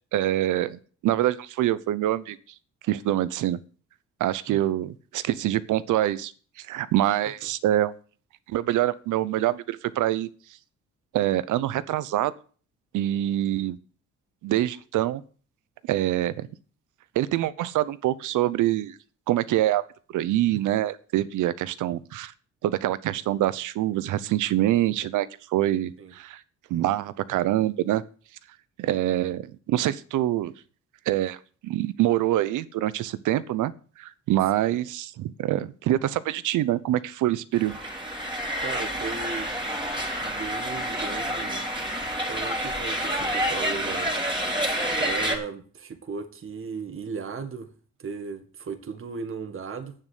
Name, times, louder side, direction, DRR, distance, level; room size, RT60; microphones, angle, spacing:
voice 1, 0.0-2.4 2.9-3.6 4.2-6.3 6.6-7.9 8.5-10.3 11.1-12.3 12.9-13.8 14.4-15.2 15.8-16.5 17.1-19.0 19.3-19.8 20.1-22.3 22.6-26.4 26.7-28.0 28.8-30.5 31.1-31.4 31.6-37.8, right 14 dB, 80° right, 0.8 m, -25 dB
sound 1, 37.5-45.4, equal, 15° right, 3.2 m, -28 dB
voice 2, 38.6-39.5 40.2-44.2 45.0-47.7 48.0-49.9, right 5 dB, 45° right, 1.8 m, -36 dB
8.9 x 7.4 x 8.2 m
cardioid pair, 90°, 30 cm